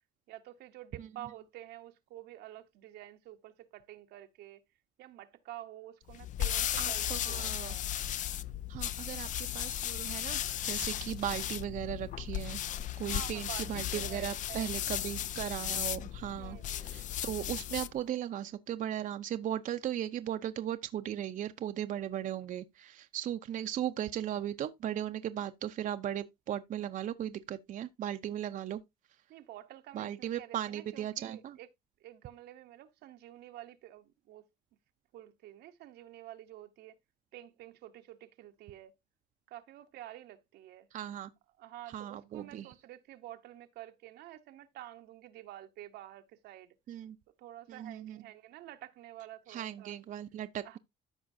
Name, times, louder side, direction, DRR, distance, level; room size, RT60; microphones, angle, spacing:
voice 1, 0.3-4.6 5.0-7.9 13.0-14.7 16.4-17.0 29.3-31.7 32.0-34.5 35.1-37.0 37.3-38.9 39.5-40.9 41.6-46.7 47.4-50.0 50.6-50.8, right 14 dB, 80° right, 0.9 m, -49 dB
sound 1, 6.1-18.0, left 11 dB, 50° left, 0.4 m, -36 dB
voice 2, 6.8-7.8 8.7-12.6 13.0-28.8 29.9-31.6 40.9-41.3 41.9-42.7 46.9-47.2 47.7-48.3 49.5-50.8, right 11 dB, 50° right, 0.6 m, -37 dB
13.5 x 5.1 x 2.6 m
cardioid pair, 110°, 17 cm